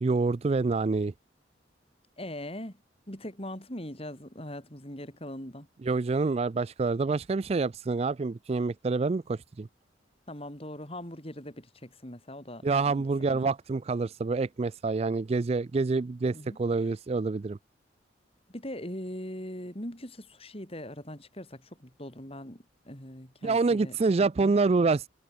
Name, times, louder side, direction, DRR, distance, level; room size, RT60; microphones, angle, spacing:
voice 1, 0.0-1.1 5.8-9.7 12.6-17.6 23.4-25.1, right 3 dB, 35° right, 0.4 m, -27 dB
voice 2, 2.2-2.8 3.1-5.7 10.3-13.5 16.3-16.6 18.5-24.0 24.4-24.5, left 1 dB, 30° left, 6.5 m, -41 dB
head